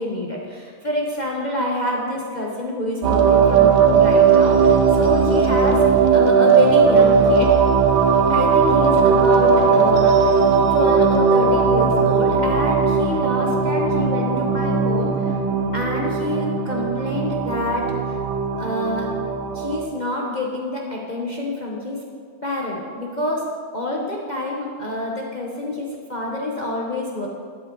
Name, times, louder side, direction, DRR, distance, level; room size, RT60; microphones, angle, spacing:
voice 1, 0.0-7.5 8.3-10.4 10.7-15.4 15.7-18.2 18.6-19.1 19.5-22.0 22.4-23.4 23.7-27.3, left 1 dB, 40° left, -2 dB, 0.6 m, -27 dB
sound 1, 3.0-19.9, right 5 dB, 65° right, 1.2 m, -17 dB
13.0 x 8.4 x 3.8 m, 2.1 s
omnidirectional pair, 2.2 m